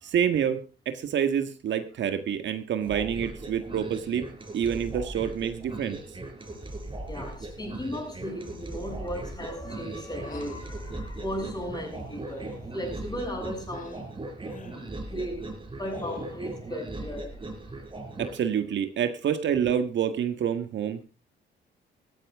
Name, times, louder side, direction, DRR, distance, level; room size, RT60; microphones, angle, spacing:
voice 1, 0.0-4.3 4.5-6.0 18.2-21.0, right 8 dB, 65° right, 1.6 m, -27 dB
sound 1, 2.8-18.4, right 2 dB, 25° right, 4.7 m, -39 dB
voice 2, 7.1-14.1 15.1-17.4, equal, 20° left, 7.7 m, -36 dB
sound 2, 10.2-10.7 12.2-12.7 13.7-14.1 14.4-14.9 15.9-16.5, left 4 dB, 40° left, 2.5 m, -45 dB
15.5 x 14.0 x 3.6 m
cardioid pair, 90°, 20 cm